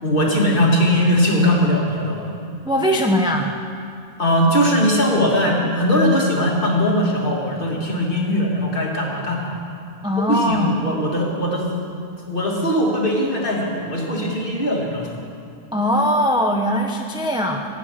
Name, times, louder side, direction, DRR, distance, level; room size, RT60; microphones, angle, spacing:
voice 1, 0.0-2.3 4.2-9.6 10.3-11.7 12.3-15.1, equal, 40° left, -2 dB, 2.8 m, -20 dB
voice 2, 2.6-3.5 10.0-10.8 15.7-17.7, equal, 5° right, 2 dB, 0.9 m, -20 dB
24.5 x 9.6 x 6.0 m, 2.5 s
omnidirectional pair, 1.4 m